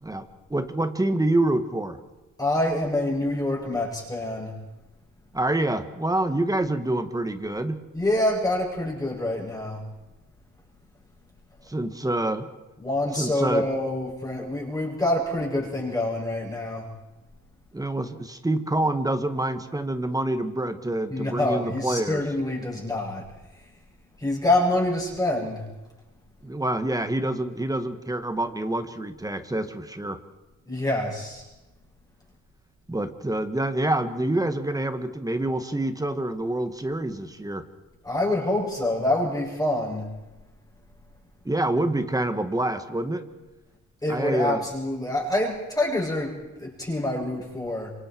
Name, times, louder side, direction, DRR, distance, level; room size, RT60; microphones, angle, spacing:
voice 1, 0.0-2.0 5.3-7.8 11.7-12.5 13.1-13.6 17.7-22.2 26.4-30.2 32.9-37.7 41.5-43.3 44.1-44.6, right 1 dB, 10° right, 9 dB, 1.8 m, -27 dB
voice 2, 2.4-4.5 7.9-9.8 12.8-16.9 21.1-23.3 24.2-25.6 30.7-31.4 38.0-40.1 44.0-47.9, left 1 dB, 10° left, -4 dB, 7.3 m, -26 dB
27.5 x 26.0 x 4.7 m, 1.1 s
cardioid pair, 90°, 30 cm